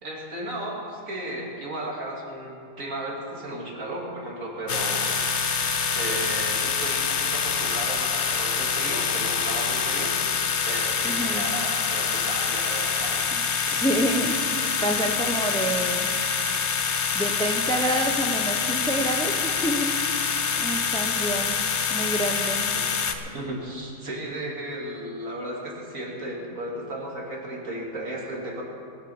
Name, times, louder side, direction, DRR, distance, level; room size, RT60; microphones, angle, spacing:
voice 1, 0.0-5.0 5.9-10.1 10.4-13.2 14.7-14.8 22.7-22.8 23.2-28.6, right 1 dB, 75° right, -2 dB, 2.9 m, -34 dB
sound 1, 4.7-23.2, left 6 dB, 60° left, 1.1 m, -26 dB
voice 2, 11.0-11.5 13.3-16.1 17.1-19.9 20.5-21.6 21.9-22.6, right 1 dB, 5° left, 4 dB, 0.7 m, -28 dB
20.5 x 7.4 x 7.1 m, 2.4 s
omnidirectional pair, 1.4 m